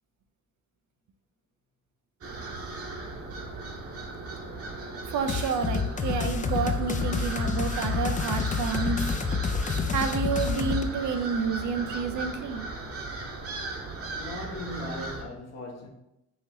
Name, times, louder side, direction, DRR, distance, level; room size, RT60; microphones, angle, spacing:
sound 1, 2.2-15.2, right 3 dB, 50° right, 1.0 m, -37 dB
voice 1, 5.1-9.1 9.9-12.7, right 5 dB, 70° right, 0.6 m, -29 dB
sound 2, 5.3-10.8, left 5 dB, 25° left, 0.4 m, -28 dB
voice 2, 14.1-15.9, left 1 dB, 60° left, 1.1 m, -38 dB
5.6 x 2.7 x 3.2 m
cardioid pair, 90°, 30 cm